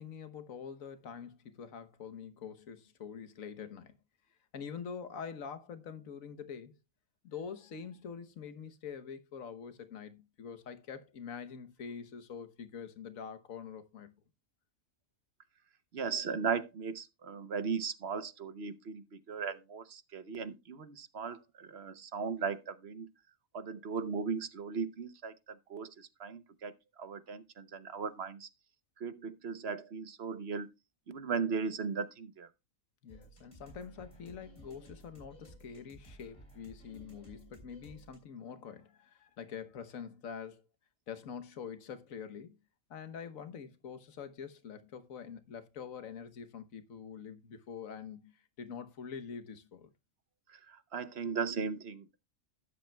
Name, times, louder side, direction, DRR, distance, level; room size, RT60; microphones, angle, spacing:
voice 1, 0.0-4.0 4.5-6.7 7.2-14.1 33.0-40.6 41.1-42.6 42.9-49.9, left 7 dB, 90° left, 1.4 m, -45 dB
voice 2, 15.9-23.1 23.5-28.5 29.0-30.7 31.1-32.5 50.5-52.2, right 5 dB, 55° right, 1.0 m, -37 dB
sound 1, 33.1-38.2, right 1 dB, 25° left, 4.2 m, -55 dB
13.0 x 10.0 x 2.2 m
omnidirectional pair, 1.4 m